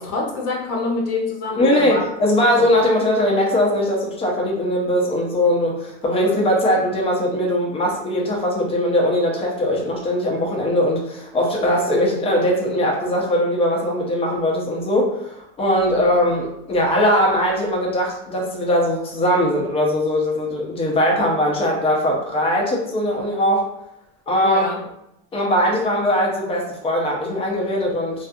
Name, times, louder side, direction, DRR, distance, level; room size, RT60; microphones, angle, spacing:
voice 1, 0.0-2.1 15.9-16.1 24.4-24.8, left 3 dB, 70° left, -1 dB, 0.7 m, -26 dB
voice 2, 1.6-23.7 24.3-24.7 25.3-28.3, equal, 20° left, -1 dB, 0.5 m, -20 dB
2.4 x 2.4 x 2.6 m, 0.82 s
cardioid pair, 150°, 32 cm